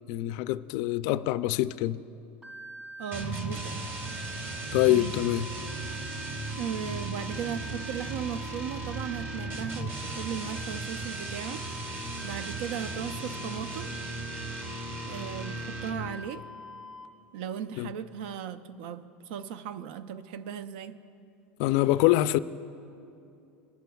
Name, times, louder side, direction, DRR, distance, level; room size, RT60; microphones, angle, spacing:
voice 1, 0.1-2.0 4.7-5.5 17.8-17.9 21.6-22.4, left 15 dB, 65° left, 0.3 m, -25 dB
sound 1, 2.4-17.1, equal, 15° right, 1.2 m, -44 dB
voice 2, 3.0-3.9 4.9-5.2 6.6-13.9 15.0-16.4 17.3-21.0, right 8 dB, 75° right, 0.5 m, -37 dB
sound 2, 3.1-16.2, right 2 dB, 40° right, 1.8 m, -37 dB
20.5 x 11.5 x 2.3 m
supercardioid pair, 130°, 6 cm